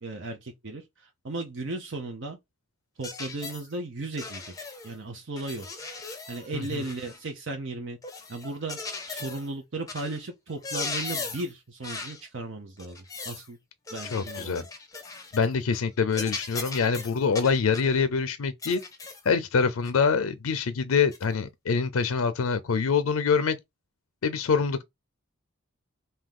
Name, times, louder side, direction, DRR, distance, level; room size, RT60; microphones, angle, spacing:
voice 1, 0.0-2.4 3.0-4.5 4.8-5.7 6.3-8.0 8.3-8.8 9.1-13.6 13.9-14.7, right 2 dB, 60° right, 0.6 m, -36 dB
sound 1, 3.0-3.7 4.2-4.9 5.4-7.2 8.0-9.5 9.9-10.2 10.5-11.5 11.8-12.2 12.8-13.5 13.9-15.5 15.7-17.9 18.6-19.3 19.8-20.0 21.1-21.2, left 4 dB, 15° left, 0.6 m, -38 dB
voice 2, 6.5-6.8 14.1-14.6 15.3-18.8 19.3-23.6 24.2-24.8, left 5 dB, 85° left, 0.5 m, -25 dB
3.6 x 2.7 x 3.6 m
head